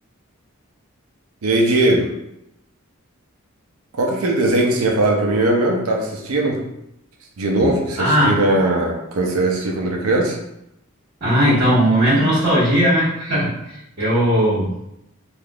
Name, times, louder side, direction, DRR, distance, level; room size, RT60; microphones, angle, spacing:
voice 1, 1.4-2.1 4.0-6.6 7.4-10.4, right 2 dB, 80° right, 0 dB, 0.5 m, -19 dB
voice 2, 8.0-8.3 11.2-14.7, equal, 50° right, -10 dB, 1.2 m, -17 dB
3.4 x 2.4 x 2.3 m, 0.83 s
head